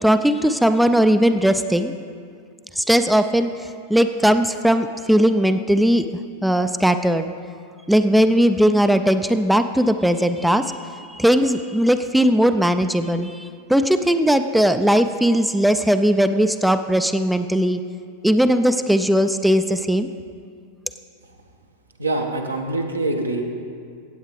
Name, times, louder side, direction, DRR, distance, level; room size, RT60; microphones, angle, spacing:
voice 1, 0.0-1.9 2.8-6.0 6.4-7.3 7.9-17.8 18.2-20.1, equal, ahead, 9 dB, 0.3 m, -18 dB
voice 2, 22.0-23.4, right 2 dB, 80° right, 3 dB, 0.9 m, -24 dB
17.0 x 8.1 x 3.2 m, 2.2 s
figure-of-eight pair, 90°, 0 cm